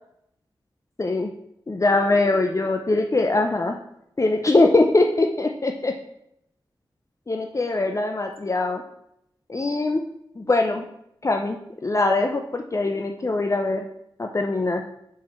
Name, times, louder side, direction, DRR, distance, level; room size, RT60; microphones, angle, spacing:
voice 1, 1.0-1.3 1.7-3.8 4.2-5.9 7.3-8.8 9.5-10.0 10.4-10.8 11.2-13.9 14.2-14.8, left 2 dB, 35° left, 4 dB, 0.6 m, -22 dB
4.8 x 4.3 x 5.6 m, 0.77 s
cardioid pair, 45°, 9 cm